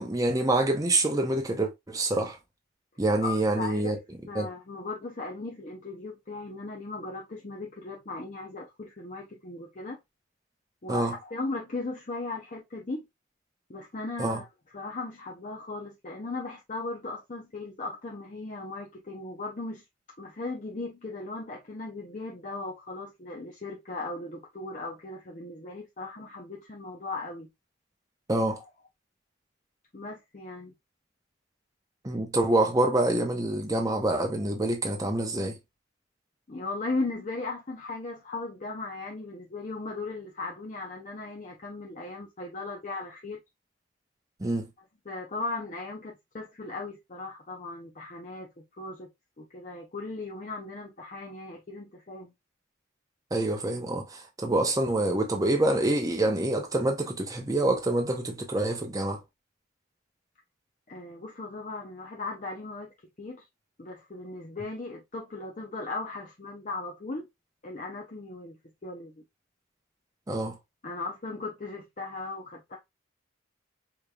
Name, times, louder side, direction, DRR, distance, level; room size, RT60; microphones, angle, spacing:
voice 1, 0.0-2.4 3.0-4.0 4.4-4.5 10.9-11.1 14.2-14.4 28.3-28.6 32.0-35.6 44.4-44.7 53.3-59.2 70.3-70.6, right 2 dB, 15° right, 0.7 m, -26 dB
voice 2, 3.2-3.9 4.3-10.0 10.8-13.0 13.7-14.5 14.7-19.8 20.2-27.5 29.9-30.7 36.5-43.4 45.1-49.1 49.4-52.3 60.9-62.9 63.2-63.4 63.8-67.3 67.6-69.1 70.8-72.8, left 3 dB, 35° left, 0.6 m, -37 dB
5.0 x 2.9 x 2.3 m
head